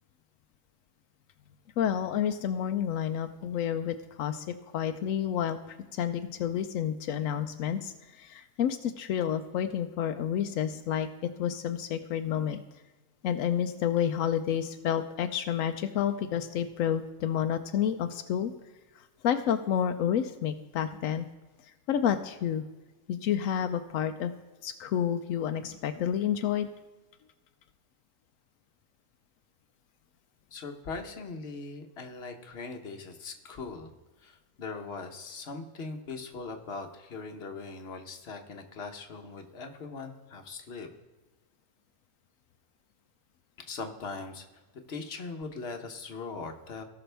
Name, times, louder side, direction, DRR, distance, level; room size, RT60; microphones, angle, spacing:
voice 1, 1.8-12.6 13.2-18.5 19.0-21.3 21.9-22.6 23.1-24.3 24.6-26.7, left 9 dB, 85° left, 8 dB, 1.0 m, -30 dB
voice 2, 30.5-33.9 34.2-40.9 43.6-44.4 44.9-46.8, left 4 dB, 55° left, 5 dB, 1.3 m, -40 dB
17.5 x 6.0 x 3.4 m, 1.2 s
omnidirectional pair, 1.3 m